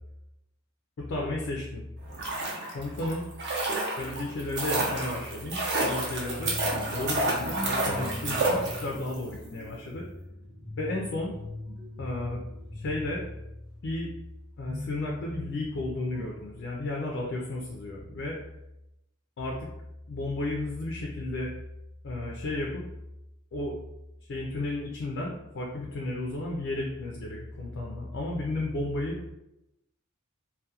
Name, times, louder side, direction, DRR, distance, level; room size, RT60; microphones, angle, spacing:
voice 1, 1.0-1.8 2.7-3.2 4.0-6.6 6.9-10.1 10.8-11.3 12.0-12.4 12.8-13.2 13.8-14.1 14.6-18.4 19.4-19.6 20.1-21.5 22.0-22.8 23.5-23.7 24.3-29.2, left 2 dB, 55° left, -1 dB, 0.3 m, -33 dB
sound 1, 2.0-9.2 9.4-9.5, right 2 dB, 55° right, 0.6 m, -30 dB
sound 2, 3.7-14.1 14.6-16.6, left 1 dB, 75° right, 1.0 m, -42 dB
2.3 x 2.1 x 2.7 m, 0.91 s
head